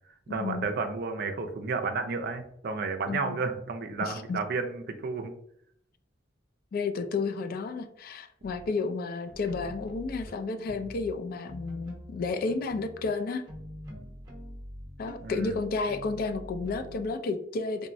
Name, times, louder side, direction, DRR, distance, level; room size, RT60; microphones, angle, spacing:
voice 1, 0.3-5.3 15.2-15.6, right 4 dB, 55° right, 6 dB, 0.4 m, -32 dB
voice 2, 3.1-3.4 4.0-4.4 6.7-13.4 15.0-17.9, left 4 dB, 50° left, 7 dB, 0.3 m, -32 dB
sound 1, 8.4-8.7 9.3-11.1 11.4-17.1, equal, 20° right, 0.7 m, -45 dB
3.6 x 2.0 x 2.6 m, 0.68 s
head